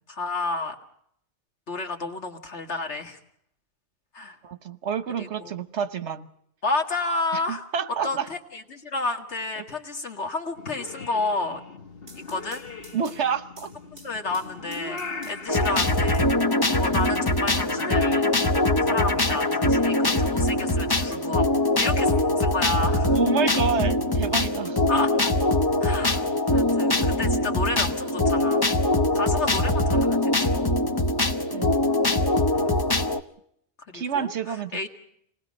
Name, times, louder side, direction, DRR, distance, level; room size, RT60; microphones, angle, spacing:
voice 1, 0.1-0.8 1.7-3.2 4.1-4.4 5.2-5.3 6.6-7.7 8.0-11.6 12.3-12.6 13.9-15.0 15.3-16.3 16.8-18.2 18.8-21.5 21.8-22.1 22.4-23.2 24.9-25.3 25.8-28.7 29.1-30.7 32.5-32.8 33.9-34.9, left 3 dB, 80° left, 4 dB, 2.2 m, -30 dB
voice 2, 4.4-6.3 7.5-8.3 12.9-13.7 14.4-14.5 23.1-24.8 31.5-31.7 33.9-34.9, right 7 dB, 80° right, 11 dB, 1.3 m, -29 dB
Purr / Meow, 10.6-18.0, left 3 dB, 60° left, 1.5 m, -40 dB
sound 1, 11.8-16.5 16.9-17.9, right 2 dB, 55° right, 4.1 m, -50 dB
sound 2, 15.5-33.2, left 1 dB, 25° left, 0.8 m, -22 dB
28.0 x 19.5 x 5.3 m, 0.70 s
omnidirectional pair, 1.1 m